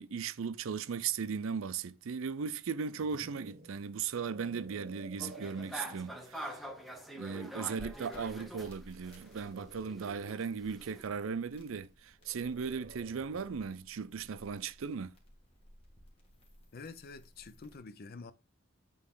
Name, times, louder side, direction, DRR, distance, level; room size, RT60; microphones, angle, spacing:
voice 1, 0.0-6.6 7.2-15.1, right 6 dB, 75° right, 0.5 m, -37 dB
sound 1, 2.7-6.3 6.9-7.2 9.0-10.5 12.2-13.7, right 3 dB, 50° right, 0.9 m, -53 dB
sound 2, 5.2-9.4 9.7-11.0, equal, ahead, 0.9 m, -45 dB
sound 3, 7.8-17.8, equal, 30° left, 1.9 m, -57 dB
voice 2, 16.7-18.3, left 4 dB, 50° left, 0.6 m, -47 dB
8.8 x 3.5 x 3.6 m
head